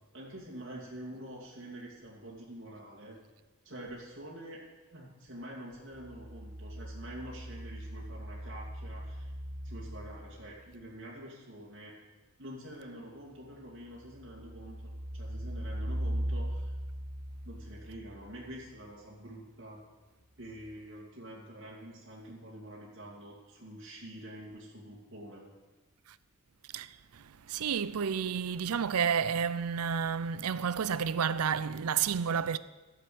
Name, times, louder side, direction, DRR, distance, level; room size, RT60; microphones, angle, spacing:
voice 1, 0.1-3.2 3.6-4.6 4.9-9.3 9.6-12.0 12.4-16.7 17.4-19.8 20.4-25.5, right 1 dB, 55° right, 2.4 m, -46 dB
sound 1, 5.9-10.6 13.9-18.5 20.6-20.7, equal, 40° right, 2.8 m, -39 dB
voice 2, 26.7-32.6, right 7 dB, 80° right, 0.5 m, -31 dB
12.5 x 7.3 x 7.7 m
head